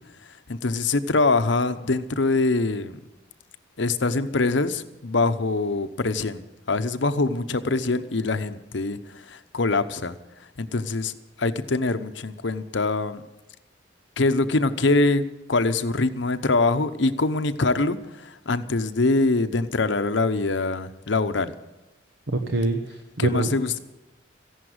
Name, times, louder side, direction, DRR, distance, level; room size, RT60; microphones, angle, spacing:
voice 1, 0.5-3.0 3.8-6.4 6.7-10.1 10.6-13.2 14.2-15.2 15.5-21.5 23.2-23.8, left 3 dB, 75° left, 10 dB, 0.9 m, -24 dB
voice 2, 22.3-23.5, right 2 dB, 75° right, 5 dB, 1.1 m, -25 dB
14.5 x 11.0 x 7.9 m, 0.99 s
head